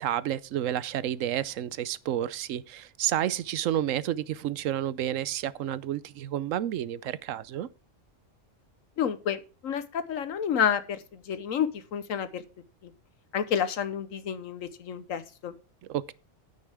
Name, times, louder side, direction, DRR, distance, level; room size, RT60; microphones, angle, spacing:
voice 1, 0.0-7.7 15.9-16.1, right 11 dB, 80° right, 1.0 m, -30 dB
voice 2, 9.0-12.4 12.8-12.9 13.3-15.6, left 8 dB, 85° left, 1.3 m, -30 dB
9.7 x 9.1 x 3.5 m
omnidirectional pair, 1.3 m